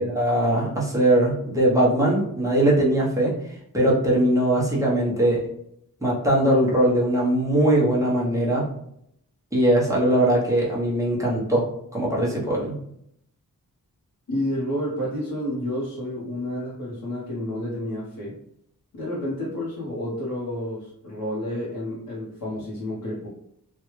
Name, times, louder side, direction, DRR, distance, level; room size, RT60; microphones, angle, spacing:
voice 1, 0.0-3.3 3.7-5.5 6.0-8.6 9.5-11.6 11.9-12.8, right 1 dB, 10° right, -5 dB, 0.9 m, -21 dB
voice 2, 14.3-18.4 18.9-23.3, left 1 dB, 60° left, -7 dB, 1.0 m, -30 dB
3.3 x 2.3 x 3.0 m, 0.74 s
wide cardioid pair, 170°, 36 cm